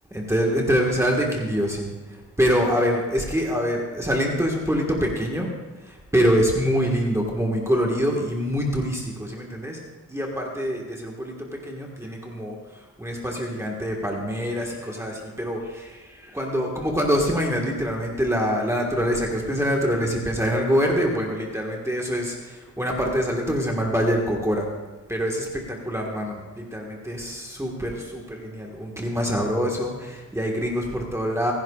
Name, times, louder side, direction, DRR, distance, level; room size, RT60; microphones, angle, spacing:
voice 1, 0.1-5.5 5.8-9.8 10.1-24.7 25.1-31.5, equal, 10° right, -2 dB, 1.6 m, -25 dB
27.5 x 10.5 x 2.4 m, 1.2 s
wide cardioid pair, 145°, 31 cm